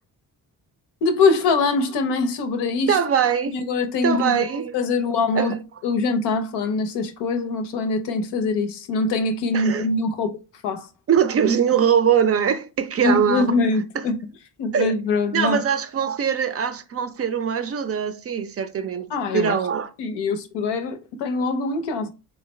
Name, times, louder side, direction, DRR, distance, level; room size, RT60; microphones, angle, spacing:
voice 1, 1.0-3.0 3.5-4.5 4.7-5.6 5.8-10.3 10.6-10.9 13.0-14.2 14.6-15.6 19.1-19.6 20.0-22.1, left 3 dB, 90° left, 0.6 m, -23 dB
voice 2, 2.9-3.6 4.0-4.8 5.3-5.6 9.5-9.9 11.1-13.6 14.0-14.1 14.7-14.9 15.3-19.1 19.3-19.9, right 8 dB, 35° right, 0.4 m, -22 dB
3.3 x 2.4 x 3.0 m
supercardioid pair, 60°, 40 cm